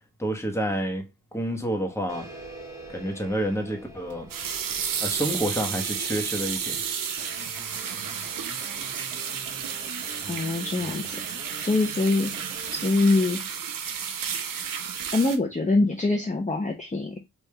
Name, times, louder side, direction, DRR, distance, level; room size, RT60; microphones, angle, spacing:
voice 1, 0.2-1.0 1.3-2.3 2.9-4.3 5.0-6.8, right 1 dB, 10° left, 1.1 m, -29 dB
sound 1, 2.1-7.2, right 2 dB, 10° right, 1.7 m, -45 dB
sound 2, 4.1-15.4, right 7 dB, 85° right, 0.6 m, -32 dB
sound 3, 7.2-13.2, right 3 dB, 35° right, 0.8 m, -45 dB
voice 2, 10.3-11.2 11.6-12.3 12.7-13.6 15.1-17.2, left 2 dB, 25° left, 0.8 m, -24 dB
3.4 x 2.6 x 3.2 m
cardioid pair, 55°, 32 cm